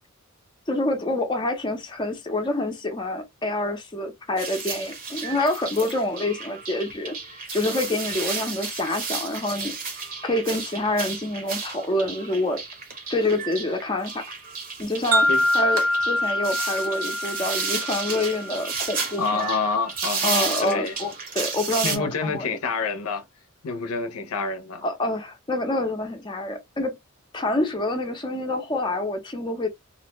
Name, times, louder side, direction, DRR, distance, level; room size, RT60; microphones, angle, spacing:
voice 1, 0.7-7.2 7.5-10.0 10.2-12.6 13.1-14.2 14.8-15.3 15.5-19.5 20.2-22.6 24.8-27.0 27.3-29.7, left 1 dB, 20° left, 0.5 m, -27 dB
sound 1, 4.4-22.0, right 5 dB, 40° right, 0.8 m, -32 dB
sound 2, 15.1-19.1, left 1 dB, 65° right, 0.5 m, -25 dB
voice 2, 19.2-21.0 21.8-23.2 23.6-24.8, left 4 dB, 80° left, 0.6 m, -27 dB
2.5 x 2.1 x 2.9 m
head